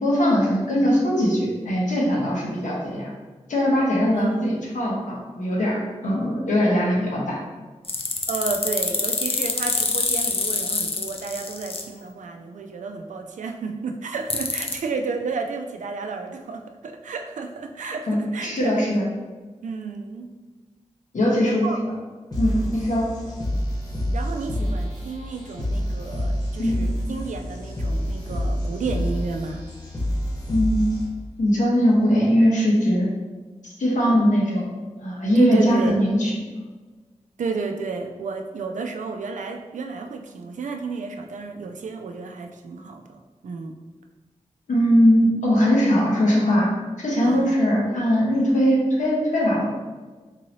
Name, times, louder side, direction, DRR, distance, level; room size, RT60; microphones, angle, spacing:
voice 1, 0.0-3.1 3.5-7.4 18.1-19.0 21.1-21.6 22.4-23.0 24.6-24.7 26.6-26.7 30.5-30.9 31.4-33.1 33.8-34.7 35.0-36.3 44.7-46.7 47.0-49.6, equal, 85° left, -4 dB, 1.0 m, -20 dB
voice 2, 4.1-4.5 8.3-18.9 19.6-20.3 21.4-21.8 22.4-22.8 24.1-29.6 34.1-34.2 35.3-36.0 37.4-43.8 47.2-47.6, right 4 dB, 90° right, 5 dB, 0.4 m, -32 dB
sound 1, 7.8-11.8 14.3-14.8, left 4 dB, 50° left, 0.5 m, -25 dB
sound 2, 22.3-31.3, equal, 35° left, 1.0 m, -28 dB
3.7 x 2.7 x 2.9 m, 1.3 s
cardioid pair, 55°, 12 cm